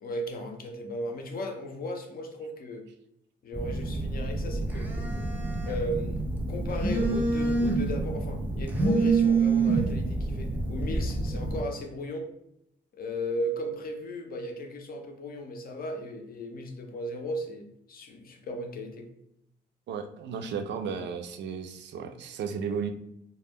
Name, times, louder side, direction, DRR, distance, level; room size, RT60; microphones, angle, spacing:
voice 1, 0.0-2.9 3.4-4.9 5.7-6.2 6.5-12.3 12.9-19.1, equal, 50° left, 4 dB, 0.5 m, -35 dB
Telephone, 3.5-11.6, right 3 dB, 10° right, 0.5 m, -27 dB
voice 2, 19.9-22.9, right 6 dB, 65° right, 7 dB, 0.4 m, -34 dB
2.1 x 2.1 x 3.4 m, 0.79 s
cardioid pair, 90°, 20 cm